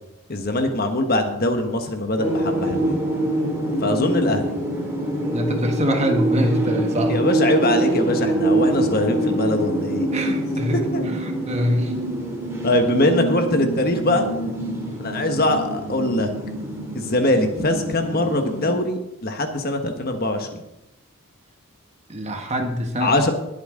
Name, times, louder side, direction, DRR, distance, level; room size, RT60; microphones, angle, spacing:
voice 1, 0.3-3.0 3.8-4.5 7.1-10.1 10.9-11.0 12.6-14.3 15.0-16.3 16.9-20.6 23.0-23.3, left 1 dB, 45° left, 5 dB, 1.4 m, -22 dB
sound 1, 2.2-18.7, right 1 dB, 10° right, 2.5 m, -25 dB
voice 2, 5.3-7.2 10.1-11.9 22.1-23.1, equal, 30° right, 4 dB, 1.4 m, -24 dB
20.0 x 8.1 x 3.8 m, 0.90 s
head